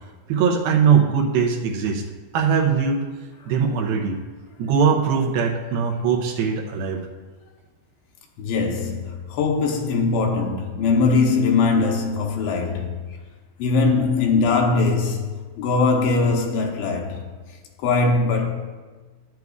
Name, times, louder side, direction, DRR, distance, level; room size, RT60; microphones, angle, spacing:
voice 1, 0.3-2.0 2.3-3.1 3.5-4.2 4.6-7.0, right 6 dB, 85° right, 2.1 m, -20 dB
voice 2, 8.4-12.9 13.6-15.3 15.6-17.2 17.8-18.5, left 4 dB, 80° left, 3.0 m, -21 dB
13.5 x 9.2 x 2.4 m
omnidirectional pair, 5.3 m